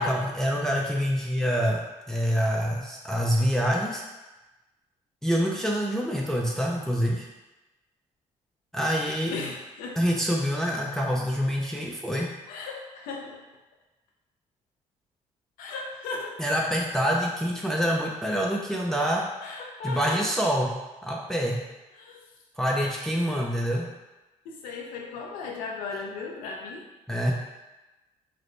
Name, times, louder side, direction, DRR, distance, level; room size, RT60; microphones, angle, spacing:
voice 1, 0.0-4.0 5.2-7.3 8.7-9.3 10.0-12.3 16.4-19.3 19.8-21.6 22.6-23.9 27.1-27.3, equal, 5° left, -2 dB, 0.5 m, -26 dB
voice 2, 9.3-10.0 12.5-13.4 15.6-16.4 19.4-20.2 22.0-22.2 24.4-26.8, left 4 dB, 85° left, 0 dB, 0.6 m, -36 dB
3.3 x 2.1 x 3.8 m, 1.1 s
supercardioid pair, 75°, 14 cm